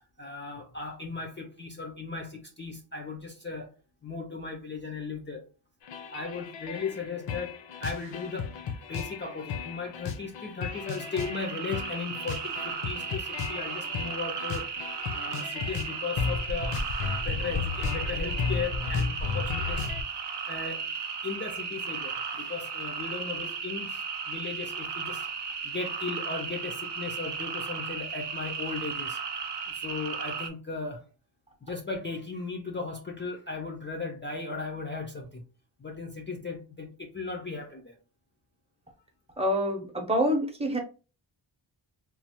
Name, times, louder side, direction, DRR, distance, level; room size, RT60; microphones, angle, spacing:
voice 1, 0.2-3.8 4.0-5.5 6.1-14.7 15.1-16.8 17.1-19.9 20.5-20.9 21.2-25.3 25.6-29.2 29.7-31.1 31.6-35.4 35.8-38.0, left 4 dB, 25° left, 0.4 m, -37 dB
sound 1, 5.8-20.0, left 5 dB, 70° left, 0.6 m, -34 dB
sound 2, 10.7-30.5, right 6 dB, 65° right, 0.6 m, -35 dB
voice 2, 39.4-40.8, equal, 15° right, 0.7 m, -26 dB
3.0 x 2.0 x 2.8 m
wide cardioid pair, 115°, 45 cm